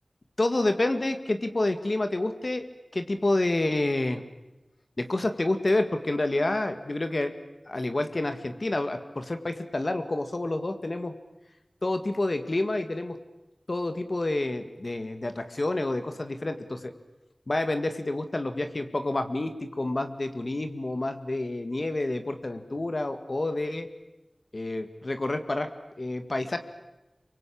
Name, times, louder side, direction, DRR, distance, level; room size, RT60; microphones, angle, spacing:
voice 1, 0.4-2.7 2.9-4.2 5.0-7.3 7.7-11.1 11.8-13.2 13.7-16.9 17.5-23.9 24.5-25.7 26.0-26.6, left 2 dB, 55° left, 8 dB, 2.0 m, -28 dB
27.0 x 23.5 x 8.7 m, 1.0 s
wide cardioid pair, 50°, 0 cm